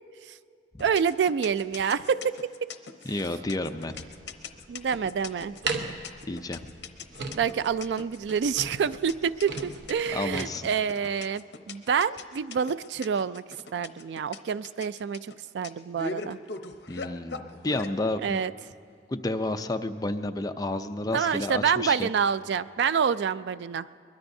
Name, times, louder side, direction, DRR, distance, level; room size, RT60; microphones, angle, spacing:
sound 1, 0.8-17.9, left 4 dB, 70° left, 0.8 m, -40 dB
voice 1, 0.8-2.7 4.7-5.6 7.3-13.4 13.7-16.4 18.2-18.5 21.1-23.9, right 7 dB, 75° right, 16 dB, 0.3 m, -27 dB
voice 2, 3.1-3.9 6.3-6.7 10.1-10.7 16.9-18.4 19.1-22.1, left 2 dB, 20° left, 7 dB, 0.5 m, -31 dB
sound 2, 3.9-10.4, right 3 dB, 90° right, 1.0 m, -38 dB
23.0 x 21.0 x 2.7 m, 2.3 s
head